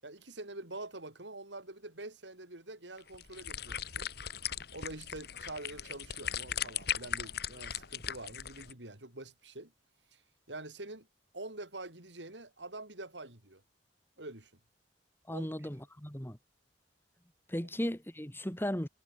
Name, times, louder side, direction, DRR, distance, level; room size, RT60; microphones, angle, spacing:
voice 1, 0.0-4.1 4.7-9.7 10.1-10.2 10.5-11.1 11.3-13.6 14.2-14.5 15.3-15.5, right 2 dB, 90° right, 6.0 m, -46 dB
sound 1, 3.0-8.7, left 9 dB, 65° left, 1.6 m, -38 dB
voice 2, 15.3-16.4 17.5-18.9, equal, 15° left, 3.1 m, -36 dB
head